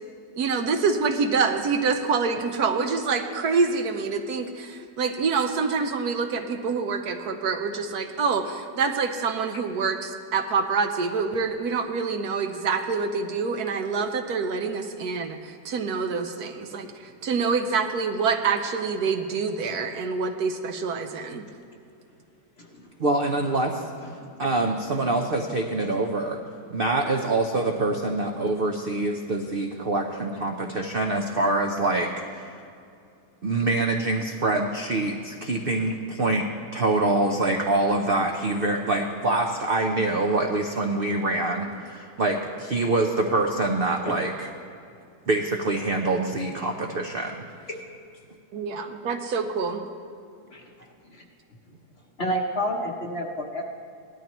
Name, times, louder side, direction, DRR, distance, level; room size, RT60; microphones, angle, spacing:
voice 1, 0.4-21.5 48.5-49.8, right 5 dB, 65° right, 6 dB, 1.2 m, -26 dB
voice 2, 23.0-23.8 24.4-26.4 26.7-32.5 33.4-36.5 36.7-44.5 45.3-47.4, right 2 dB, 50° right, 2 dB, 0.6 m, -25 dB
voice 3, 52.2-53.6, equal, 45° left, 1 dB, 1.0 m, -28 dB
18.0 x 12.0 x 3.0 m, 2.5 s
omnidirectional pair, 1.9 m